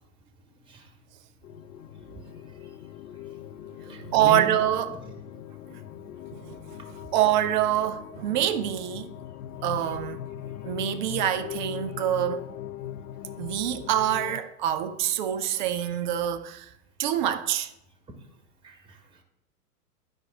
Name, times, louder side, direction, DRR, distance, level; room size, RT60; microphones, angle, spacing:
sound 1, 1.4-14.4, left 11 dB, 65° left, 0.5 m, -40 dB
voice 1, 1.9-2.7 3.2-4.5 4.9-5.0 5.7-6.1 15.8-15.9 17.4-17.5 18.6-19.0, equal, 10° right, 1.2 m, -40 dB
voice 2, 4.0-5.0 6.3-6.8 7.1-9.1 9.6-10.2 10.6-12.4 13.4-16.7 17.0-17.7, right 11 dB, 30° right, 0.4 m, -26 dB
10.5 x 5.1 x 3.6 m
figure-of-eight pair, 100°, 48 cm